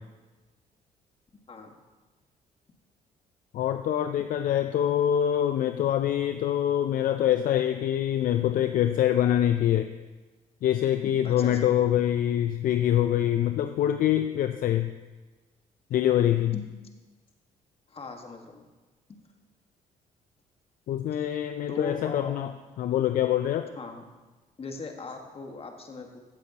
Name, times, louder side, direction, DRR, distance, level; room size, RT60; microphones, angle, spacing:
voice 1, 3.5-9.9 10.6-14.9 15.9-16.5 20.9-22.5 22.8-23.7, left 11 dB, 65° left, 8 dB, 0.5 m, -25 dB
voice 2, 11.2-11.6 16.5-16.6 17.9-18.6 19.1-19.2 21.1-21.2 21.7-22.3 23.8-24.0 24.6-26.2, left 4 dB, 40° left, 3 dB, 1.6 m, -39 dB
14.5 x 8.1 x 2.9 m, 1.2 s
supercardioid pair, 60°, 16 cm